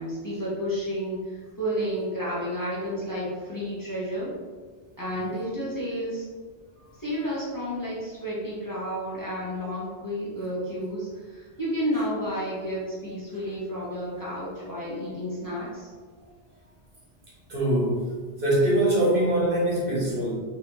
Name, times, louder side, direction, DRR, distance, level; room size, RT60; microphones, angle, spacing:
voice 1, 0.0-4.3 5.0-6.2 7.0-15.9, equal, 20° left, -8 dB, 1.2 m, -31 dB
voice 2, 17.5-20.3, right 1 dB, 60° right, -6 dB, 1.6 m, -23 dB
4.3 x 4.0 x 3.0 m, 1.5 s
omnidirectional pair, 1.1 m